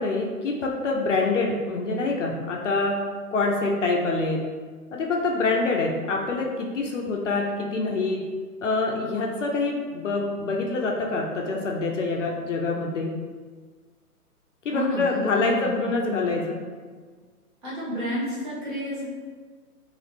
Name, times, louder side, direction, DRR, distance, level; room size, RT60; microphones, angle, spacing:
voice 1, 0.0-2.9 3.3-4.4 4.9-8.2 8.6-13.1 14.6-16.6, left 3 dB, 55° left, 0 dB, 0.5 m, -25 dB
voice 2, 14.7-15.7 17.6-19.0, equal, 35° right, -7 dB, 0.9 m, -30 dB
2.9 x 2.4 x 3.3 m, 1.6 s
hypercardioid pair, 155°, 46 cm